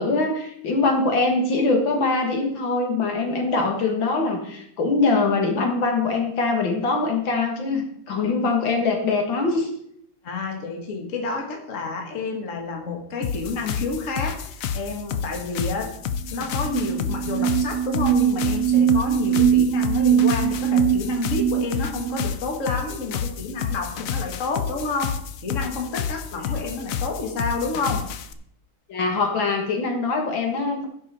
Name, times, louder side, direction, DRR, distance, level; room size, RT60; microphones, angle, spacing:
voice 1, 0.0-9.7 26.3-26.4 28.9-30.9, left 3 dB, 65° left, 3 dB, 2.2 m, -23 dB
voice 2, 10.2-15.9 16.3-28.1, left 3 dB, 40° left, 2 dB, 1.7 m, -29 dB
sound 1, 13.2-28.3, left 7 dB, 90° left, 0.7 m, -30 dB
sound 2, 16.3-16.4 16.6-22.3, right 9 dB, 85° right, 1.5 m, -22 dB
16.0 x 5.6 x 4.2 m, 0.70 s
omnidirectional pair, 2.3 m